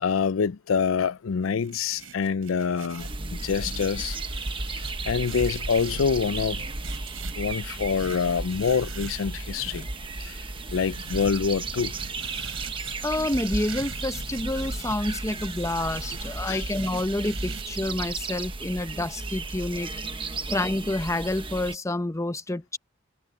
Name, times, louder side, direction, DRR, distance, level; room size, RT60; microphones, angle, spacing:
voice 1, 0.0-3.1 3.4-4.2 5.1-6.6 7.4-9.9 10.3-10.4 10.7-11.9 16.5-16.6, left 6 dB, 85° left, 0.5 m, -26 dB
sound 1, 1.4-9.8 10.6-17.6, right 6 dB, 85° right, 6.0 m, -44 dB
sound 2, 3.0-21.8, right 3 dB, 25° right, 1.1 m, -34 dB
voice 2, 13.0-19.9 20.5-22.8, left 1 dB, 15° left, 0.8 m, -28 dB
head